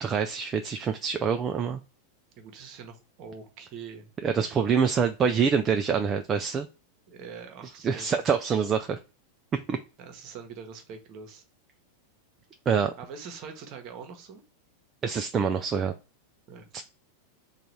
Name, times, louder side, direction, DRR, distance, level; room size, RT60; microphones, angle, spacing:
voice 1, 0.0-1.8 4.2-6.7 7.8-8.9 9.5-9.8 12.7-12.9 15.0-15.9 16.7-16.8, right 6 dB, 25° right, 6 dB, 0.3 m, -25 dB
voice 2, 2.4-4.1 7.1-8.7 10.0-11.4 13.0-14.4 16.5-16.8, right 6 dB, 40° right, 6 dB, 0.9 m, -44 dB
3.8 x 2.4 x 4.6 m, 0.33 s
figure-of-eight pair, 90°, 0 cm